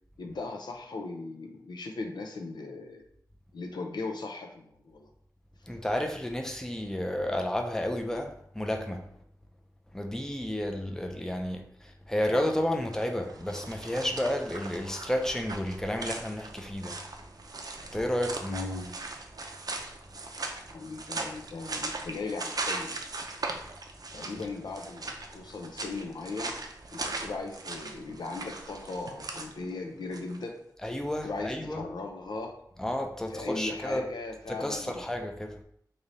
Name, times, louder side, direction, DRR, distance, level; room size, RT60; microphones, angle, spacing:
voice 1, 0.2-3.1 3.5-5.1 18.5-19.0 20.7-23.0 24.1-26.6 26.9-30.6 31.2-32.6 33.3-35.1, left 3 dB, 85° left, 0.5 m, -38 dB
voice 2, 5.7-9.0 9.9-17.0 17.9-18.8 30.8-31.8 32.8-34.1 34.5-35.6, left 1 dB, 5° left, 0.5 m, -31 dB
sound 1, 12.8-30.4, right 3 dB, 60° right, 0.5 m, -39 dB
3.2 x 2.7 x 3.8 m
wide cardioid pair, 75°, 7 cm